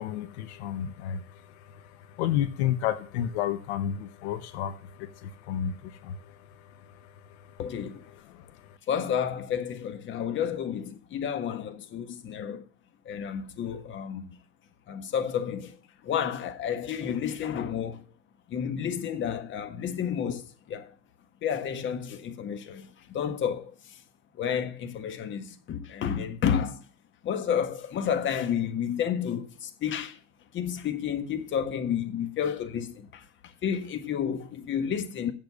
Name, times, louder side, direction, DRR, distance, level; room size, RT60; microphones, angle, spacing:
voice 1, 0.0-7.6 8.1-8.8, left 10 dB, 75° left, 1.0 m, -32 dB
voice 2, 7.6-8.1 8.9-12.6 13.0-14.4 14.9-15.8 16.0-18.0 18.5-20.9 21.4-24.0 24.3-26.8 27.2-30.2 30.5-35.3, left 8 dB, 35° left, 1.4 m, -31 dB
7.8 x 7.2 x 6.9 m
supercardioid pair, 115°, 33 cm